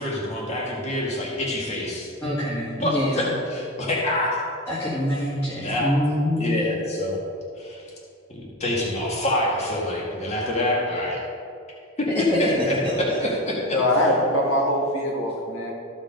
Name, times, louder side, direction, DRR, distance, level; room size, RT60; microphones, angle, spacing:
voice 1, 0.0-2.1 2.8-4.4 5.6-5.9 6.4-7.2 7.6-7.9 8.3-11.2 12.0-13.8, left 1 dB, 35° left, -3 dB, 1.9 m, -26 dB
voice 2, 2.2-3.4 4.7-6.6 12.1-12.9, equal, 15° left, -8 dB, 1.8 m, -25 dB
voice 3, 13.7-15.7, left 1 dB, 90° left, -1 dB, 2.0 m, -22 dB
14.0 x 5.3 x 5.2 m, 2.5 s
head